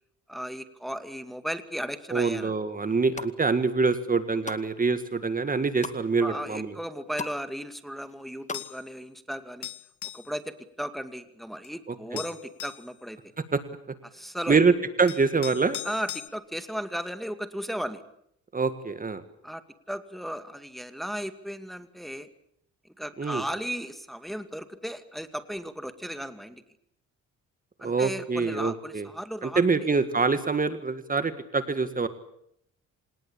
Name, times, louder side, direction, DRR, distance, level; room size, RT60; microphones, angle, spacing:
voice 1, 0.3-2.5 6.2-9.7 10.1-13.3 14.1-14.6 15.8-18.0 19.4-22.3 23.0-26.6 27.8-29.6, equal, ahead, 10 dB, 2.3 m, -35 dB
voice 2, 2.1-6.7 11.9-12.2 13.5-13.6 14.5-15.8 18.5-19.2 23.2-23.4 27.8-29.1 29.4-32.1, right 4 dB, 30° right, 11 dB, 1.9 m, -25 dB
sound 1, 2.9-3.3 3.9-4.6 5.1-6.0 6.5-6.6 6.8-7.4 7.7-8.7 9.0-9.1, left 3 dB, 25° left, 2.2 m, -38 dB
sound 2, 8.5-8.8 9.6-10.3 11.6-11.7 12.2-12.9 14.4-14.5 15.1-16.3, left 13 dB, 75° left, 1.3 m, -39 dB
26.5 x 19.0 x 8.6 m, 0.71 s
cardioid pair, 90°, 30 cm